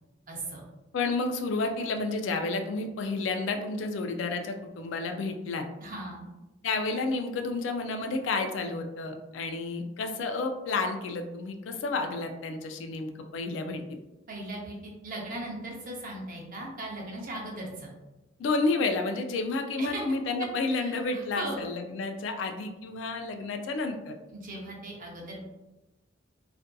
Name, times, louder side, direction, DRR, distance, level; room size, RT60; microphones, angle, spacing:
voice 1, 0.3-0.6 5.8-6.2 14.3-17.9 19.8-20.0 20.4-20.5 20.8-21.6 24.3-25.5, right 1 dB, 45° right, -2 dB, 0.6 m, -38 dB
voice 2, 0.9-5.6 6.6-13.8 18.4-24.1, left 3 dB, 70° left, 5 dB, 0.3 m, -30 dB
2.5 x 2.5 x 2.2 m, 1.0 s
head